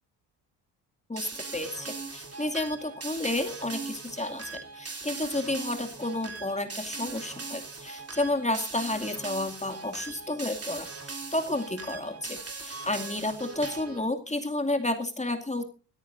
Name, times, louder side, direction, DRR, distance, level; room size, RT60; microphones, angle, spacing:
voice 1, 1.1-15.6, left 2 dB, 15° left, 6 dB, 2.4 m, -31 dB
sound 1, 1.2-14.1, right 4 dB, 30° right, 3.6 m, -40 dB
24.0 x 13.5 x 2.6 m, 0.35 s
hypercardioid pair, 50°, 45 cm